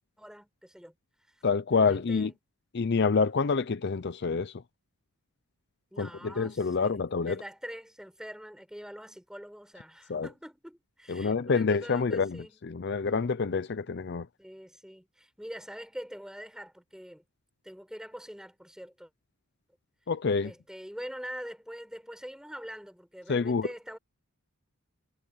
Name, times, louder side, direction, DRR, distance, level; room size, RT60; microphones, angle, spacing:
voice 1, 0.2-1.4 1.7-2.4 5.9-12.6 14.4-17.2 17.6-19.1 20.4-24.0, equal, 5° right, 7.2 m, -44 dB
voice 2, 1.4-2.3 2.7-4.5 6.0-7.4 10.1-10.3 11.1-14.3 20.1-20.5 23.3-23.7, left 4 dB, 50° left, 0.5 m, -27 dB
head